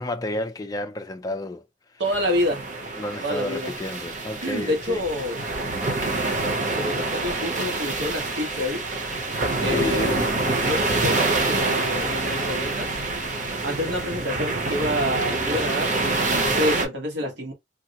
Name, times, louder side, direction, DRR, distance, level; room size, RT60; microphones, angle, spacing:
voice 1, 0.0-1.7 3.0-5.0 6.0-6.2 9.7-10.3, left 1 dB, 20° left, 0.4 m, -31 dB
sound 1, 2.0-16.8, right 3 dB, 40° right, 0.8 m, -26 dB
voice 2, 2.0-2.7 3.2-3.7 4.4-5.4 6.7-8.8 9.6-10.2 10.7-13.0 13.6-17.5, left 1 dB, 85° right, 1.2 m, -28 dB
3.5 x 2.0 x 2.8 m
head